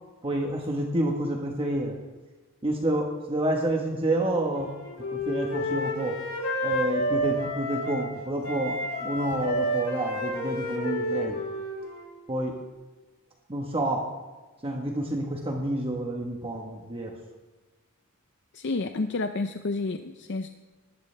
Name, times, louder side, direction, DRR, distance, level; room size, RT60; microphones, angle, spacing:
voice 1, 0.2-2.0 2.6-4.7 5.1-6.2 6.6-11.4 12.3-12.6 13.5-14.1 14.6-17.1, right 1 dB, 25° right, 1 dB, 1.3 m, -29 dB
Wind instrument woodwind instrument, 4.5-8.1 8.4-12.2, equal, 85° left, 5.0 m, -30 dB
voice 2, 18.5-20.5, left 3 dB, 55° left, 7 dB, 0.6 m, -30 dB
19.5 x 14.0 x 3.3 m, 1.3 s
head